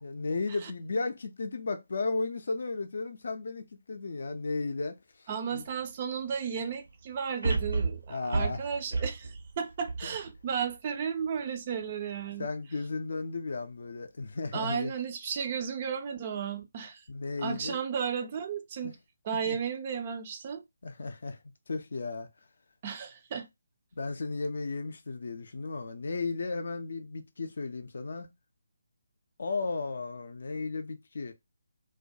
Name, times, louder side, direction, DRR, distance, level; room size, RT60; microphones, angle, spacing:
voice 1, 0.0-5.0 5.5-5.6 8.1-8.6 12.4-14.9 17.1-17.8 18.8-18.9 19.5-19.6 20.8-21.4 21.7-22.3 23.9-28.3 29.4-31.3, left 3 dB, 55° left, 0.4 m, -34 dB
voice 2, 5.3-12.5 14.5-17.0 17.4-19.0 19.2-20.6 22.8-23.5, right 7 dB, 30° right, 0.3 m, -34 dB
sound 1, 5.7-5.8 7.4-10.7 11.2-11.3, right 3 dB, 70° right, 0.7 m, -31 dB
2.2 x 2.1 x 2.6 m
figure-of-eight pair, 145°, 0 cm